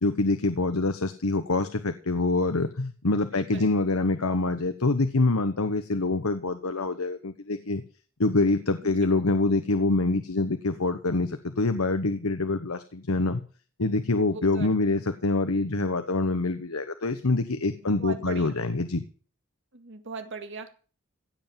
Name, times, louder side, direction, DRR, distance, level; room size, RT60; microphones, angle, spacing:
voice 1, 0.0-7.8 8.2-13.4 13.8-19.0, left 2 dB, 85° left, 9 dB, 1.1 m, -25 dB
voice 2, 3.3-3.7 8.8-8.9 14.2-14.7 17.8-18.5 19.7-20.7, right 4 dB, 60° right, 7 dB, 2.2 m, -40 dB
16.5 x 8.1 x 7.5 m, 0.40 s
head